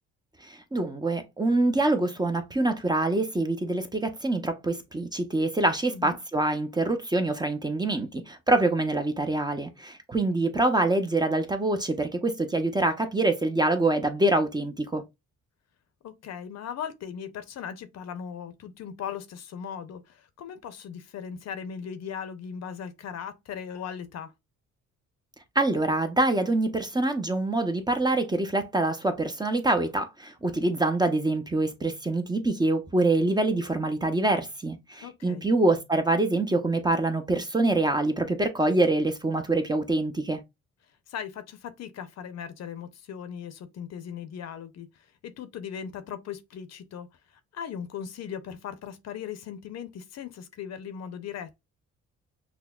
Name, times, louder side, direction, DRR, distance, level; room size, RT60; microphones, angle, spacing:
voice 1, 0.4-15.0 25.6-40.4, right 2 dB, 15° right, 0.5 m, -25 dB
voice 2, 16.0-24.3 35.0-35.4 41.1-44.9 45.2-47.1 47.5-51.6, left 8 dB, 60° left, 0.6 m, -38 dB
5.8 x 2.1 x 2.3 m
cardioid pair, 100°, 29 cm